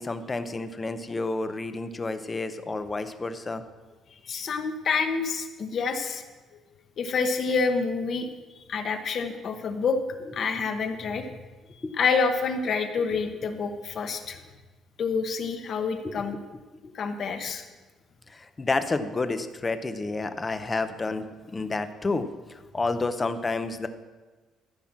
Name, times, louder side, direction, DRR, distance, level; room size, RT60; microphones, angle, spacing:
voice 1, 0.0-3.6 11.8-11.9 16.0-16.4 16.8-16.9 18.3-23.9, left 3 dB, 15° left, 10 dB, 0.6 m, -30 dB
voice 2, 4.2-6.2 7.0-8.3 8.7-10.0 10.3-11.3 11.7-14.4 15.0-16.4 16.9-17.6, left 5 dB, 40° left, 7 dB, 1.0 m, -27 dB
14.0 x 5.9 x 7.3 m, 1.3 s
cardioid pair, 170°, 0 cm